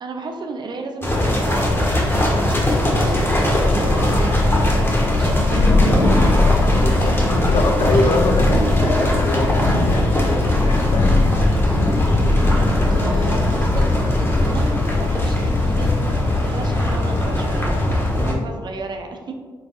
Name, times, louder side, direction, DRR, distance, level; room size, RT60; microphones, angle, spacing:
voice 1, 0.0-6.3 12.4-17.8 18.2-19.3, right 3 dB, 50° right, 4 dB, 0.5 m, -33 dB
sound 1, 1.0-18.3, left 1 dB, 25° left, 1.1 m, -20 dB
Thunder / Rain, 2.6-16.7, left 2 dB, 80° left, 1.3 m, -22 dB
voice 2, 6.8-11.2 18.2-18.4, left 2 dB, 55° left, 5 dB, 0.5 m, -24 dB
4.0 x 3.4 x 2.4 m, 1.5 s
supercardioid pair, 45°, 9 cm